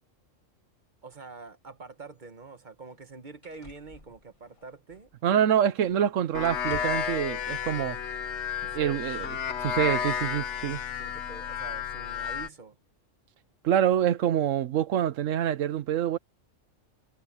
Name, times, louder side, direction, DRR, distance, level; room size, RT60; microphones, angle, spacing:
voice 1, 1.0-5.1 8.6-9.5 11.0-12.8, right 4 dB, 40° right, 1.2 m, -46 dB
sound 1, 2.2-2.3 2.9-3.0 3.4-5.4 5.8-6.1 6.4-7.2 8.3-8.4, left 2 dB, 25° left, 1.7 m, -50 dB
voice 2, 5.2-8.0 8.7-9.3 9.6-10.8 13.6-16.2, right 10 dB, 80° right, 1.1 m, -26 dB
sound 2, 6.3-12.5, left 8 dB, 65° left, 1.2 m, -32 dB
omnidirectional pair, 1.3 m